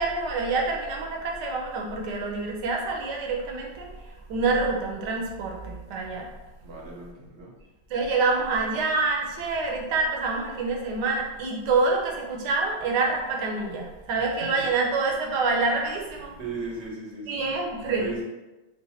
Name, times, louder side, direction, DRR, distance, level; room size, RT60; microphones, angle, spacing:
voice 1, 0.0-6.3 7.9-16.4 17.3-18.1, right 3 dB, 75° right, 0 dB, 1.3 m, -27 dB
voice 2, 6.6-7.5 16.4-17.4 18.0-18.2, right 4 dB, 50° right, -3 dB, 0.9 m, -36 dB
3.9 x 2.2 x 4.1 m, 1.1 s
omnidirectional pair, 1.9 m